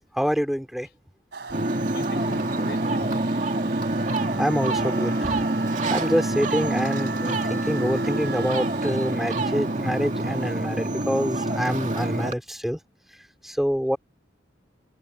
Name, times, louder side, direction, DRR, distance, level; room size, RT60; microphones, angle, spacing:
voice 1, 0.2-0.9 4.4-5.4 5.9-12.8 13.4-14.0, equal, ahead, 2.7 m, -26 dB
sound 1, 1.3-10.5, right 4 dB, 60° right, 3.9 m, -38 dB
voice 2, 1.4-3.3, left 2 dB, 60° left, 5.5 m, -43 dB
Ocean, 1.5-12.3, right 2 dB, 40° right, 2.5 m, -26 dB
head